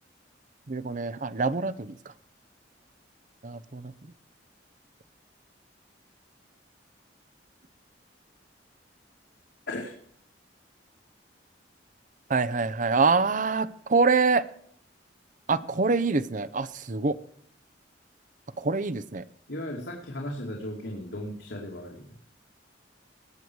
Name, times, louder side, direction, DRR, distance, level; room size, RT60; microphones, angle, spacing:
voice 1, 0.7-2.0 3.4-3.9 12.3-14.4 15.5-17.2 18.6-19.2, right 4 dB, 45° right, 15 dB, 0.7 m, -25 dB
voice 2, 19.5-22.2, left 1 dB, 85° left, -1 dB, 2.7 m, -36 dB
19.5 x 7.0 x 4.7 m, 0.64 s
head